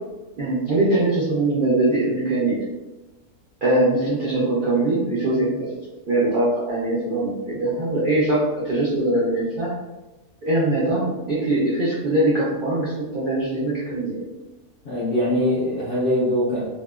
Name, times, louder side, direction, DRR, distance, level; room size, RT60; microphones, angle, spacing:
voice 1, 0.4-2.6 3.6-5.7 6.1-9.7 10.4-14.2, right 2 dB, 85° right, -7 dB, 0.4 m, -22 dB
voice 2, 14.8-16.6, equal, 65° left, -5 dB, 0.7 m, -22 dB
2.8 x 2.1 x 2.3 m, 1.1 s
omnidirectional pair, 1.6 m